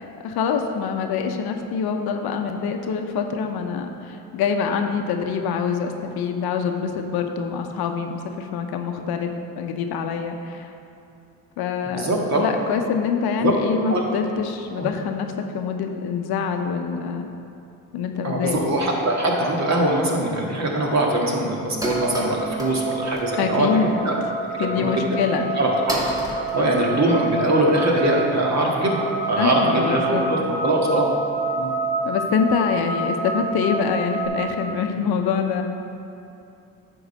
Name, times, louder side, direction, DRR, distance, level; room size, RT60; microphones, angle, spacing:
voice 1, 0.0-9.3 9.6-10.7 11.6-15.3 15.5-17.3 17.9-18.6 23.4-24.0 24.6-25.5 29.4-30.2 32.0-35.6, left 6 dB, 65° left, 5 dB, 0.8 m, -25 dB
voice 2, 11.9-12.4 13.4-13.5 13.9-14.0 14.8-14.9 18.2-24.2 24.7-24.9 25.6-26.0 26.5-31.1 31.6-31.7, right 1 dB, 40° right, -1 dB, 1.8 m, -22 dB
sound 1, 20.4-20.5 20.8-20.9 21.2-21.3 21.6-22.8 23.1-23.5 23.9-24.0 24.8-24.9 25.4-25.5 25.9-27.4, equal, 10° right, 1.9 m, -31 dB
sound 2, 21.8-34.3, right 3 dB, 70° right, 1.6 m, -28 dB
9.0 x 3.9 x 6.5 m, 2.7 s
supercardioid pair, 65°, 41 cm